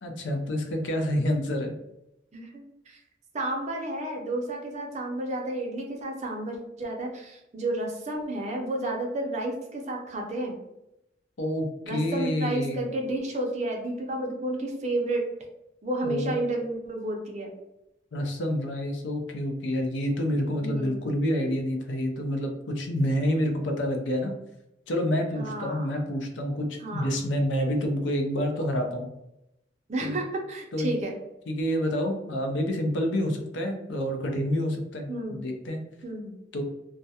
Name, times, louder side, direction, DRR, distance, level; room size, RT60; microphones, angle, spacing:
voice 1, 0.0-1.7 11.4-12.9 16.0-16.3 18.1-22.5 22.8-24.3 24.9-29.1 30.0-30.2 30.7-30.9 31.5-35.8 36.5-36.6, equal, 75° left, 4 dB, 0.5 m, -28 dB
voice 2, 2.3-3.0 3.3-10.6 11.8-15.2 15.8-17.5 20.6-21.1 25.3-25.9 26.8-27.1 29.9-31.2 35.1-35.4 36.0-36.4, right 1 dB, 40° right, 1 dB, 0.5 m, -31 dB
2.3 x 2.1 x 2.7 m, 0.87 s
head